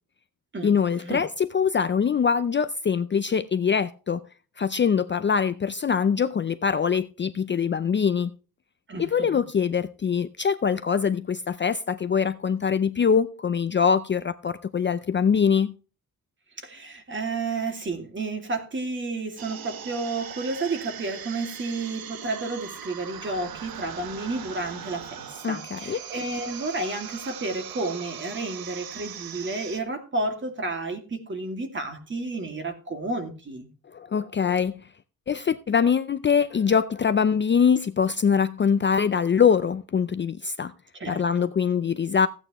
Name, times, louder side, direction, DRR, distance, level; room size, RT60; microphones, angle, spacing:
voice 1, 0.6-4.2 4.6-8.3 9.0-15.7 25.4-26.0 33.9-34.8 35.3-40.7 41.1-42.3, left 6 dB, 30° left, 0.5 m, -23 dB
voice 2, 8.9-9.4 16.6-33.7 40.9-41.2, right 3 dB, 35° right, 2.4 m, -31 dB
sound 1, 19.4-29.8, right 9 dB, 80° right, 1.0 m, -40 dB
15.5 x 8.9 x 3.0 m
wide cardioid pair, 160°, 35 cm